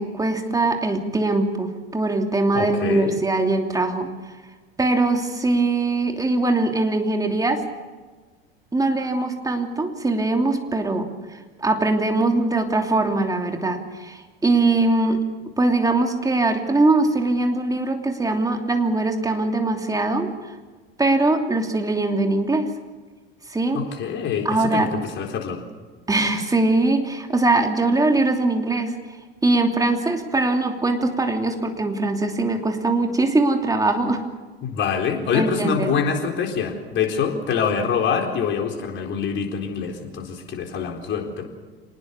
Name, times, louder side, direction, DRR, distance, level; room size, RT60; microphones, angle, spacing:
voice 1, 0.0-4.1 4.8-7.6 8.7-11.1 11.6-15.2 15.6-20.3 21.0-22.7 23.5-23.8 24.4-24.9 26.1-29.0 29.4-34.2 35.3-35.9, right 2 dB, 10° right, 4 dB, 2.9 m, -21 dB
voice 2, 2.5-3.2 23.7-25.6 34.6-41.4, left 6 dB, 40° left, 3 dB, 4.2 m, -25 dB
26.0 x 19.5 x 7.0 m, 1.3 s
figure-of-eight pair, 75°, 30 cm